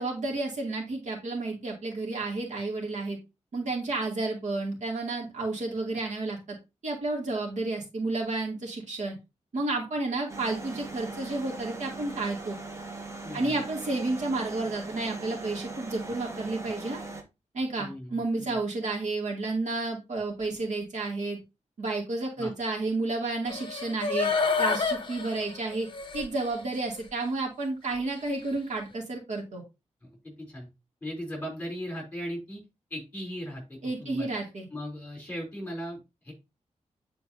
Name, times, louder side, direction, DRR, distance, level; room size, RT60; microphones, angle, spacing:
voice 1, 0.0-3.2 3.5-6.6 6.8-9.2 9.5-12.6 13.3-17.0 17.5-21.4 21.8-24.3 24.6-25.9 26.1-29.6 33.8-34.7, right 2 dB, 75° right, 0 dB, 2.5 m, -31 dB
sound 1, 10.3-17.2, right 3 dB, 25° right, 1.0 m, -40 dB
voice 2, 13.2-13.6 17.8-18.6 22.4-22.5 30.2-30.7 31.0-32.6 32.9-34.3 34.7-36.3, equal, 10° left, -1 dB, 3.4 m, -38 dB
sound 2, 23.5-26.5 27.0-27.1, left 4 dB, 40° left, 0.9 m, -29 dB
9.4 x 4.5 x 2.7 m, 0.24 s
wide cardioid pair, 170°, 12 cm